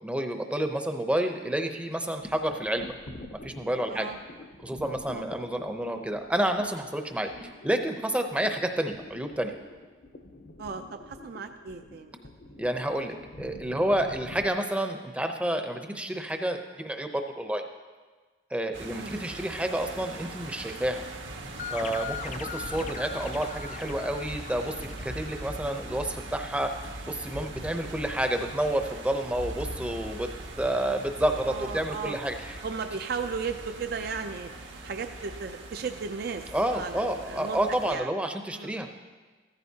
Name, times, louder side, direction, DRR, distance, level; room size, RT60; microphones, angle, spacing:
voice 1, 0.0-2.9 3.4-4.1 4.6-9.6 12.6-17.6 18.5-21.0 21.7-24.7 25.0-26.7 27.0-30.3 30.6-32.6 36.5-38.9, right 1 dB, 5° right, 5 dB, 0.6 m, -29 dB
sound 1, 1.8-14.5, left 1 dB, 55° left, 0.8 m, -47 dB
voice 2, 10.6-12.1 18.9-19.2 31.4-32.2 32.6-34.5 34.8-36.5 36.7-37.6 37.9-38.1 38.5-38.7, right 5 dB, 55° right, 7 dB, 0.4 m, -35 dB
sound 2, 18.7-38.0, right 2 dB, 80° right, 1.4 m, -41 dB
sound 3, 21.6-25.9, left 7 dB, 40° left, 0.4 m, -40 dB
15.0 x 14.0 x 2.8 m, 1.4 s
head